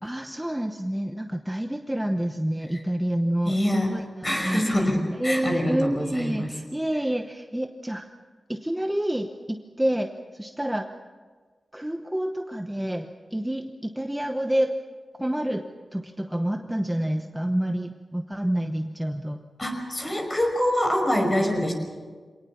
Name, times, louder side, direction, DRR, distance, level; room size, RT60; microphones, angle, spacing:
voice 1, 0.0-4.8 5.2-8.1 8.5-10.9 11.7-14.8 15.2-15.6 15.9-19.4, right 1 dB, 10° right, 5 dB, 0.9 m, -28 dB
voice 2, 3.4-3.9 4.2-6.5 19.6-21.7, left 1 dB, 25° left, 3 dB, 5.5 m, -25 dB
25.5 x 18.5 x 7.2 m, 1.5 s
wide cardioid pair, 105°, 0 cm